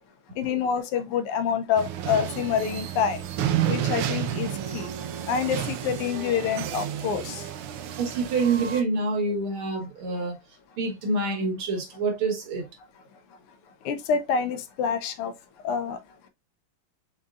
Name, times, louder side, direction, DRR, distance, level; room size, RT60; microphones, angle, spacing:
voice 1, 0.4-3.2 3.7-4.9 5.3-7.4 13.8-15.3 15.6-16.0, left 7 dB, 90° left, 1.7 m, -27 dB
sound 1, 1.8-8.8, right 10 dB, 90° right, 1.6 m, -31 dB
voice 2, 8.0-10.4 10.8-12.6, right 3 dB, 70° right, 2.2 m, -26 dB
5.3 x 3.6 x 2.4 m
omnidirectional pair, 2.4 m